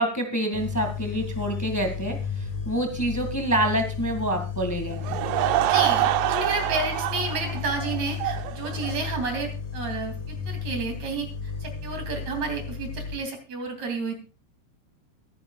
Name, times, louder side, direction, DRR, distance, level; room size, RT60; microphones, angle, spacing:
voice 1, 0.0-5.2, right 1 dB, 15° left, 5 dB, 0.6 m, -27 dB
sound 1, 0.5-13.2, left 6 dB, 55° left, 3.7 m, -33 dB
Laughter / Crowd, 4.9-9.4, right 14 dB, 75° right, 2.2 m, -26 dB
voice 2, 5.7-14.2, right 3 dB, 50° right, 5 dB, 3.9 m, -31 dB
23.0 x 10.0 x 2.4 m, 0.32 s
omnidirectional pair, 4.2 m